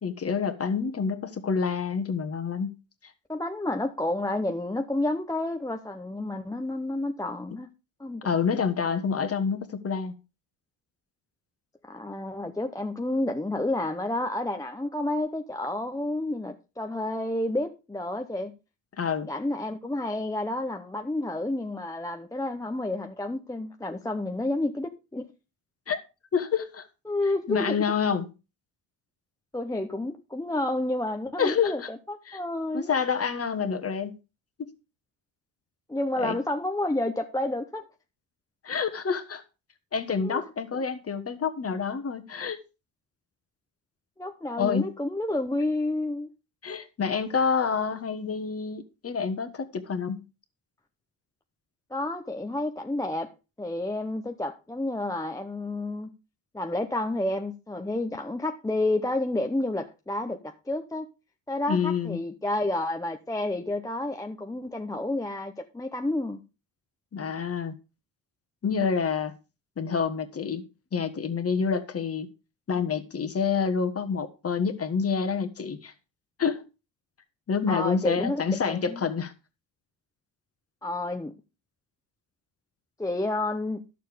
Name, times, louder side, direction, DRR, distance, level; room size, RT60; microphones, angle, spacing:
voice 1, 0.0-2.7 8.2-10.1 19.0-19.3 25.9-26.0 26.3-26.9 27.5-28.3 31.4-31.9 32.3-32.4 32.7-34.1 34.6-34.7 36.2-36.4 38.6-39.4 39.9-42.6 44.6-44.9 46.6-50.2 61.7-62.2 67.1-67.7 68.6-69.3 69.8-72.3 72.7-75.9 76.4-76.6 77.5-79.3, left 6 dB, 30° left, 1.3 m, -28 dB
voice 2, 3.3-7.7 8.0-8.2 11.8-18.5 19.2-25.2 27.1-27.8 29.5-32.9 35.9-37.9 40.2-40.4 40.7-40.8 44.2-46.3 51.9-53.3 53.6-56.1 56.5-61.1 61.5-66.4 77.7-79.0 80.8-81.3 83.0-83.8, left 2 dB, 5° left, 0.7 m, -30 dB
11.5 x 6.7 x 5.0 m
cardioid pair, 130°, 48 cm